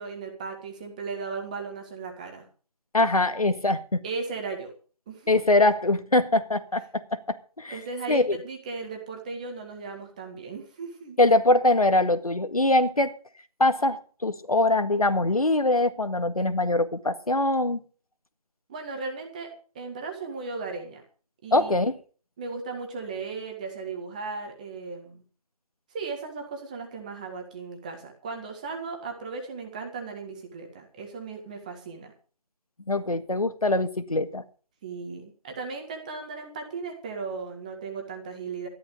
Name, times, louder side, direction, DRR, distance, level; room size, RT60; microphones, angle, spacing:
voice 1, 0.0-2.5 4.0-4.7 5.1-5.3 7.7-11.2 18.7-21.0 21.4-21.8 22.4-25.2 25.9-32.1 34.8-38.7, right 4 dB, 10° right, 1.7 m, -36 dB
voice 2, 2.9-4.0 5.3-6.8 7.3-7.8 8.1-8.4 11.2-13.1 13.6-17.8 21.5-22.0 32.9-34.4, left 2 dB, 65° left, 1.9 m, -23 dB
14.0 x 11.5 x 5.3 m
figure-of-eight pair, 165°, 20 cm